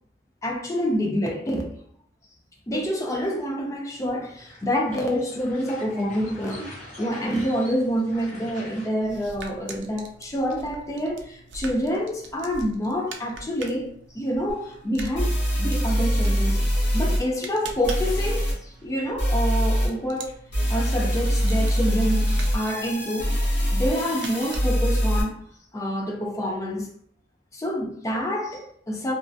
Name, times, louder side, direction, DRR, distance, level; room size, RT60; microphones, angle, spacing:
voice 1, 0.4-1.7 2.7-16.6 16.9-20.3 20.7-23.3 23.7-25.4 25.7-26.9 27.5-29.1, equal, 15° left, 0.3 m, -27 dB
sound 1, 4.0-8.9, equal, 40° left, 0.9 m, -43 dB
sound 2, 9.0-25.1, right 3 dB, 70° right, 0.4 m, -43 dB
sound 3, 14.5-14.6 15.2-17.2 17.8-18.5 19.2-19.9 20.5-25.2, equal, 70° left, 0.9 m, -23 dB
2.4 x 2.1 x 2.5 m
head